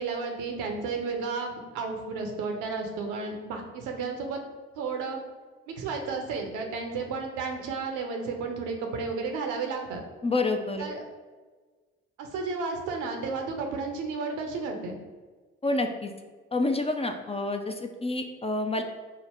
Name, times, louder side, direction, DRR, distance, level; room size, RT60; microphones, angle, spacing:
voice 1, 0.0-4.4 4.8-5.2 5.7-10.0 10.8-11.0 12.2-15.0, right 4 dB, 75° right, 3 dB, 0.7 m, -32 dB
voice 2, 10.2-10.9 15.6-16.1 16.5-18.8, left 2 dB, 20° left, 5 dB, 0.4 m, -28 dB
3.7 x 2.1 x 4.3 m, 1.4 s
hypercardioid pair, 50°, 31 cm